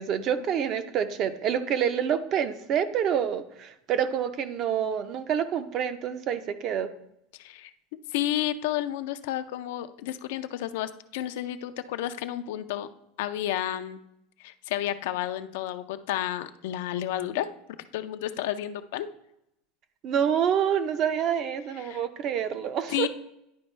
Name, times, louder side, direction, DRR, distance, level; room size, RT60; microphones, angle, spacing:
voice 1, 0.0-6.9 20.0-23.1, right 8 dB, 40° right, 10 dB, 0.6 m, -27 dB
voice 2, 7.3-7.7 8.1-12.9 13.2-14.0 14.4-17.5 17.9-19.1 21.7-22.0 22.9-23.1, left 12 dB, 75° left, 10 dB, 0.4 m, -31 dB
10.5 x 4.3 x 3.2 m, 0.81 s
supercardioid pair, 135°, 0 cm